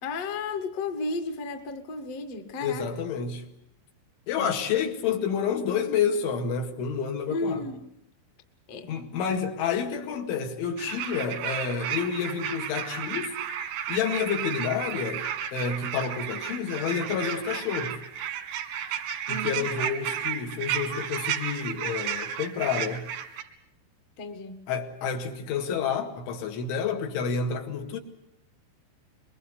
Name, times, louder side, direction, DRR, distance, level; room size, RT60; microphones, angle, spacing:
voice 1, 0.0-2.8 4.4-4.5 7.3-7.8 8.7-8.9 19.3-19.7 24.2-24.6, left 3 dB, 50° left, 6 dB, 2.1 m, -33 dB
voice 2, 2.6-3.4 4.3-7.6 8.9-13.3 13.9-15.3 15.5-18.0 18.9-19.0 19.3-23.1 24.7-28.0, left 6 dB, 75° left, 4 dB, 4.4 m, -29 dB
sound 1, 10.8-23.4, right 9 dB, 90° right, 4.1 m, -33 dB
24.0 x 22.5 x 8.2 m, 0.76 s
omnidirectional pair, 5.5 m